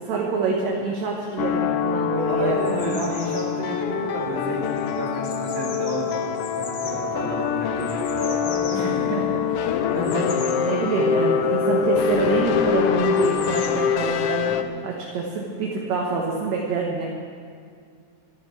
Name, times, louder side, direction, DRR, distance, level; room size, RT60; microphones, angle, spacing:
voice 1, 0.0-2.8 8.7-10.2 10.5-14.5 14.8-17.0, right 4 dB, 65° right, -1 dB, 2.4 m, -26 dB
sound 1, 1.4-14.6, left 7 dB, 85° left, 1.3 m, -24 dB
sound 2, 2.3-13.7, left 5 dB, 60° left, 2.3 m, -42 dB
voice 2, 2.3-9.4 9.9-10.2, right 1 dB, 40° right, -4 dB, 3.8 m, -31 dB
25.5 x 10.5 x 4.6 m, 2.1 s
omnidirectional pair, 3.5 m